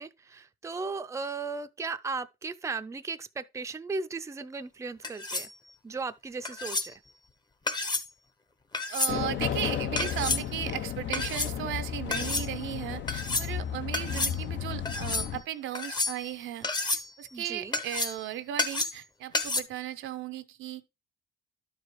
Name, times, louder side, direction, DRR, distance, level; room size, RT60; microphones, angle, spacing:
voice 1, 0.0-5.5 5.8-7.0 17.3-17.8, right 4 dB, 15° right, 0.5 m, -36 dB
sound 1, 5.0-5.5 6.5-6.9 7.7-8.1 8.7-9.2 10.0-10.4 11.1-11.5 12.1-12.5 13.1-13.5 13.9-14.4 14.9-15.3 15.7-16.3 16.6-17.1 17.7-18.2 18.6-19.0 19.3-19.6, left 3 dB, 20° left, 0.8 m, -30 dB
voice 2, 8.9-20.8, right 12 dB, 85° right, 0.7 m, -36 dB
sound 2, 9.1-15.4, left 9 dB, 65° left, 0.8 m, -34 dB
11.5 x 4.9 x 3.1 m
cardioid pair, 90°, 20 cm